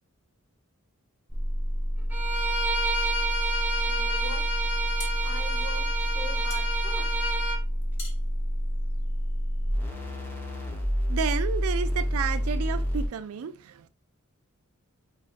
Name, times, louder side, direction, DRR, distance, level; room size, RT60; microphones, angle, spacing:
sound 1, 1.3-13.1, equal, 10° left, 0.9 m, -29 dB
Bowed string instrument, 2.1-7.6, right 2 dB, 10° right, 0.4 m, -30 dB
voice 1, 3.8-4.4 5.2-7.1, equal, 30° left, 1.5 m, -42 dB
sound 2, 5.0-9.6, left 3 dB, 55° left, 1.3 m, -46 dB
voice 2, 11.1-13.9, right 7 dB, 75° right, 0.4 m, -31 dB
5.1 x 2.3 x 2.4 m
head